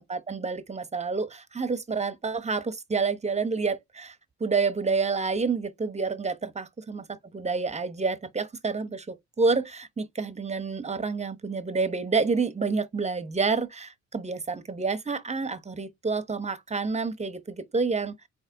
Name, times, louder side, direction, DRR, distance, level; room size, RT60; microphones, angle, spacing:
voice 1, 0.1-4.1 4.4-18.1, right 4 dB, 20° right, 0.9 m, -28 dB
4.2 x 3.3 x 3.9 m
cardioid pair, 90°, 30 cm